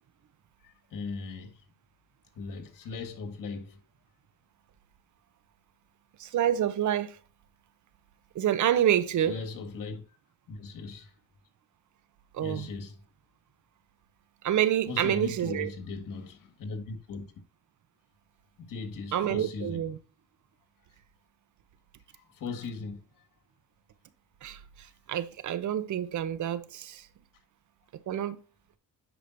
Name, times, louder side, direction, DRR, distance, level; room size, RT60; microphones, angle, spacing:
voice 1, 0.6-1.6 2.4-3.8 9.3-10.2 10.5-11.1 12.4-13.0 14.9-17.3 18.6-19.9 22.1-23.3, left 4 dB, 70° left, 1.8 m, -39 dB
voice 2, 6.2-7.2 8.3-9.3 12.3-12.7 14.4-15.7 19.1-20.0 24.4-24.6 25.1-27.1 28.1-28.4, right 10 dB, 60° right, 0.8 m, -27 dB
10.0 x 5.0 x 2.6 m
cardioid pair, 85°, 33 cm